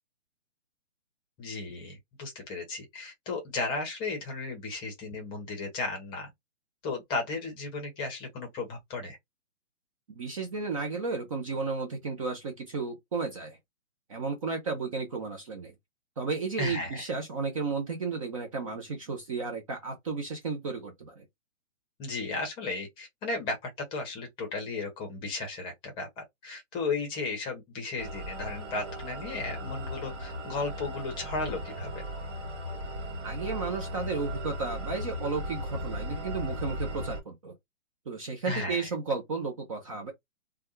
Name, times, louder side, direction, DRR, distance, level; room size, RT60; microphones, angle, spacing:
voice 1, 1.4-6.3 6.8-9.2 16.6-17.0 22.0-31.9 38.5-38.9, left 3 dB, 10° left, 0.8 m, -35 dB
voice 2, 10.1-13.6 14.1-15.7 16.2-21.2 33.2-37.5 38.1-40.1, right 4 dB, 30° right, 0.6 m, -33 dB
sound 1, 28.0-37.2, equal, 65° right, 1.6 m, -37 dB
3.4 x 2.2 x 3.0 m
hypercardioid pair, 155°, 38 cm